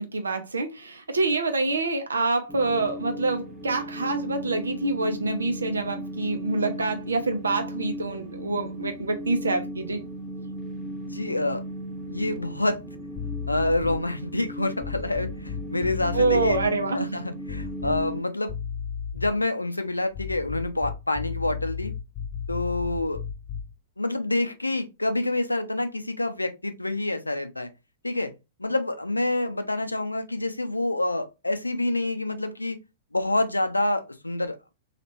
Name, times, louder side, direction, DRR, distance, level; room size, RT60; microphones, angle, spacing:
voice 1, 0.0-10.0 16.1-17.1, right 3 dB, 80° right, 0.6 m, -26 dB
sound 1, 2.5-18.2, equal, ahead, 0.9 m, -37 dB
voice 2, 11.1-11.6 12.1-12.8 13.5-16.6 16.9-18.6 19.1-21.9 22.5-23.2 24.0-27.7 28.0-28.3 28.6-32.8 33.1-34.7, left 2 dB, 90° left, 0.4 m, -27 dB
sound 2, 13.2-14.1 14.8-16.7 17.5-18.2 18.5-19.4 20.1-23.8, left 7 dB, 30° left, 0.5 m, -34 dB
2.9 x 2.4 x 3.1 m
figure-of-eight pair, 105°, 0 cm